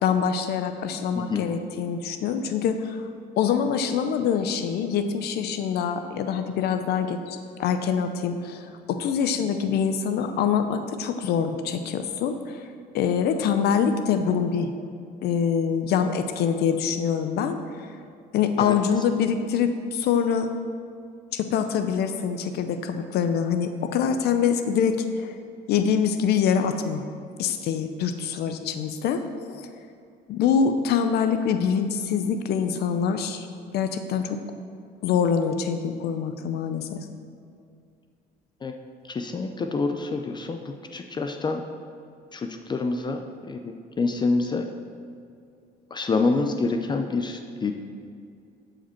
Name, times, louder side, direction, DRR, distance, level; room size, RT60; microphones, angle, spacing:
voice 1, 0.0-3.0 3.4-12.7 12.9-14.7 15.2-17.9 18.3-20.5 21.3-25.3 25.7-27.0 27.4-29.7 30.3-33.5 33.7-34.4 35.0-37.0, left 7 dB, 70° left, 8 dB, 0.6 m, -25 dB
voice 2, 1.1-1.4 18.6-18.7 38.6-38.7 39.1-41.6 42.3-44.7 45.9-47.7, left 3 dB, 25° left, 5 dB, 0.5 m, -27 dB
11.5 x 5.0 x 4.4 m, 2.4 s
cardioid pair, 110°, 17 cm